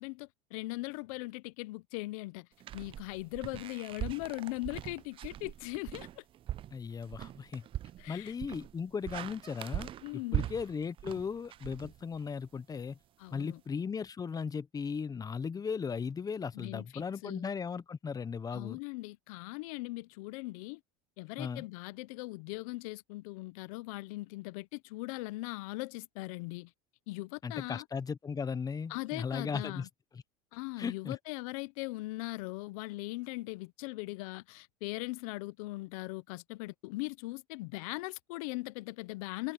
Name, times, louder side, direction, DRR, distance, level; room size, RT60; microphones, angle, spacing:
voice 1, 0.0-2.5 2.7-6.2 8.0-8.3 10.0-10.5 13.2-13.6 16.5-17.5 18.5-20.8 21.2-26.7 27.1-27.8 28.9-29.9 30.5-39.5, left 22 dB, 75° left, 0.9 m, -40 dB
sound 1, 2.6-12.5, right 12 dB, 30° right, 0.3 m, -41 dB
voice 2, 6.7-7.6 8.1-13.0 13.3-18.8 21.4-21.6 27.4-29.9 30.1-30.2 30.8-31.2, left 6 dB, 20° left, 0.8 m, -37 dB
supercardioid pair, 115°, 18 cm